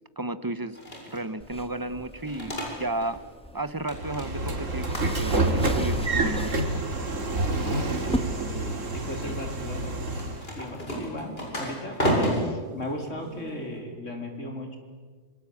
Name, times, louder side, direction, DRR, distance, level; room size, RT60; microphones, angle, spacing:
voice 1, 0.2-0.8 1.1-3.2 3.5-6.5, right 2 dB, 20° right, 13 dB, 0.8 m, -33 dB
sound 1, 0.7-1.3 2.0-3.2 3.5-4.5 4.9-5.4 5.8-6.6 7.3-8.2 8.7-9.3 10.1-13.8, equal, 50° left, 7.4 m, -32 dB
sound 2, 1.4-8.2, equal, 5° left, 1.8 m, -39 dB
Train / Sliding door, 3.9-10.5, right 2 dB, 85° right, 2.8 m, -28 dB
voice 2, 8.3-14.8, left 1 dB, 80° left, 3 dB, 4.2 m, -37 dB
26.5 x 25.5 x 8.6 m, 1.5 s
omnidirectional pair, 1.3 m